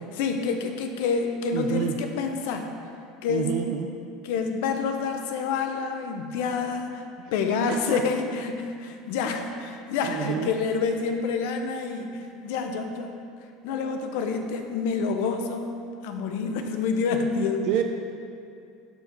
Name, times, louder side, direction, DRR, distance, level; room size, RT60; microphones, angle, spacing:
voice 1, 0.1-2.7 3.2-3.5 4.2-13.1 13.6-15.7 16.0-17.7, left 5 dB, 70° left, 5 dB, 0.8 m, -28 dB
voice 2, 1.5-1.9 3.3-3.9 7.7-8.0 10.1-10.5 17.7-17.8, right 10 dB, 60° right, 4 dB, 0.5 m, -28 dB
12.0 x 4.5 x 4.6 m, 2.4 s
hypercardioid pair, 85°, 0 cm